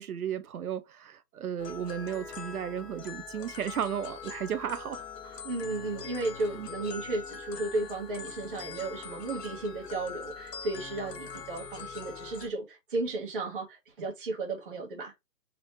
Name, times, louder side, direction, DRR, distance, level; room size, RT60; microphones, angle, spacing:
voice 1, 0.0-5.4 6.5-6.7, right 9 dB, 60° right, 0.7 m, -34 dB
sound 1, 1.6-12.5, left 6 dB, 70° left, 0.9 m, -43 dB
voice 2, 5.4-15.1, right 2 dB, 35° right, 1.5 m, -34 dB
4.1 x 2.6 x 3.0 m
hypercardioid pair, 170°, 49 cm